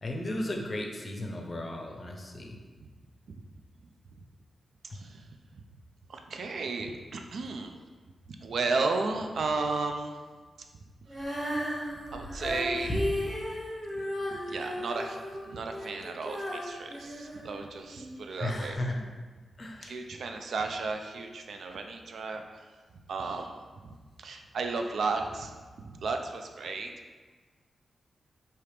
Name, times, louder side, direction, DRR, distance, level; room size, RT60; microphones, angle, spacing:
voice 1, 0.0-2.6 18.4-19.0 19.6-19.9, left 1 dB, 35° left, 1 dB, 0.5 m, -35 dB
voice 2, 4.8-5.3 6.1-7.7 8.3-10.2 12.1-12.9 14.5-18.8 19.8-22.7 23.1-26.9, right 3 dB, 70° right, 4 dB, 0.4 m, -34 dB
Female singing, 11.1-18.1 18.7-18.8, equal, 5° right, 1.0 m, -35 dB
4.8 x 2.9 x 3.2 m, 1.4 s
wide cardioid pair, 130°, 0 cm